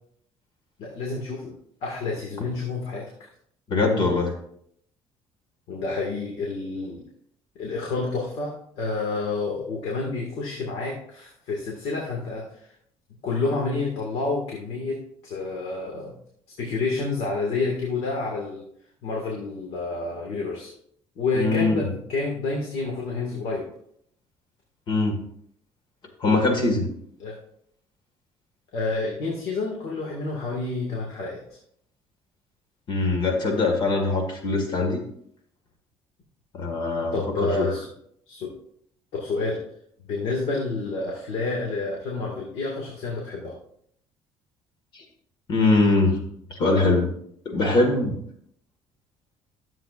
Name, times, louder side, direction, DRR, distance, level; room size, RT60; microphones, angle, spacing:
voice 1, 0.8-1.5 1.8-3.3 5.7-7.0 7.6-12.7 13.2-16.2 16.6-18.6 19.0-20.7 21.2-23.7 27.2-27.4 28.7-31.4 37.1-37.9 38.3-38.5 39.1-39.6 40.1-43.5, left 3 dB, 80° left, -1 dB, 2.0 m, -29 dB
voice 2, 3.7-4.3 21.4-21.9 24.9-25.2 26.2-26.9 32.9-35.0 36.5-37.7 40.3-40.4 44.9-45.0 45.5-46.2 46.5-47.1 47.5-48.2, left 3 dB, 50° left, 3 dB, 1.9 m, -22 dB
13.5 x 7.5 x 2.5 m, 0.67 s
cardioid pair, 135°, 10 cm